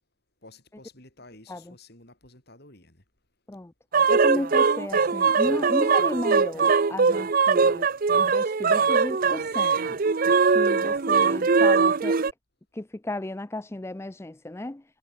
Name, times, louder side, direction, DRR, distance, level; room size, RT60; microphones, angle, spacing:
voice 1, 0.4-3.0, left 2 dB, 50° left, 7.2 m, -51 dB
sound 1, 3.9-12.3, right 5 dB, 45° right, 0.5 m, -21 dB
voice 2, 4.1-7.9 8.1-9.8 10.5-12.2 12.7-14.8, left 1 dB, 10° left, 0.4 m, -34 dB
head